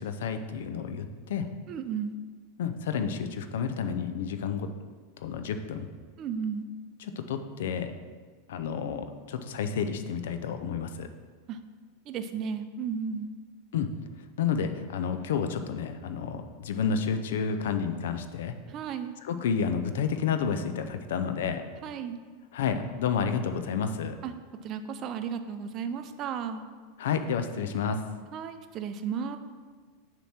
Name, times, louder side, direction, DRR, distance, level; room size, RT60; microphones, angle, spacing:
voice 1, 0.0-1.5 2.6-4.7 5.2-5.9 7.0-7.9 8.5-11.1 13.7-13.9 14.4-18.6 19.2-21.6 22.5-24.2 27.0-28.0, left 6 dB, 70° left, 8 dB, 0.5 m, -30 dB
voice 2, 1.7-2.2 6.2-6.7 11.5-11.6 12.1-13.3 18.7-19.1 21.8-22.2 24.2-24.3 24.6-26.6 28.3-29.4, right 7 dB, 40° right, 9 dB, 0.5 m, -34 dB
7.0 x 3.0 x 5.9 m, 1.5 s
hypercardioid pair, 95°, 0 cm